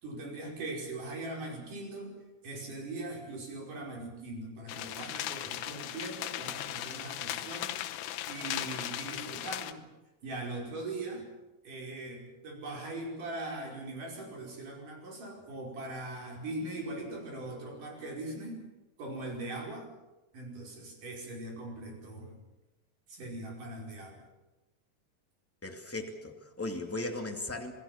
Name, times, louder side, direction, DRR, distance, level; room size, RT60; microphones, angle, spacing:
voice 1, 0.0-2.1 2.4-7.8 8.3-9.8 10.2-11.2 11.6-18.6 19.0-19.9 20.3-22.4 23.1-24.2, right 2 dB, 50° right, 1 dB, 6.6 m, -40 dB
sound 1, 4.7-9.7, left 13 dB, 85° left, 3.1 m, -37 dB
voice 2, 25.6-27.7, left 2 dB, 5° left, 3 dB, 1.3 m, -37 dB
27.5 x 20.0 x 7.3 m, 1.0 s
omnidirectional pair, 4.7 m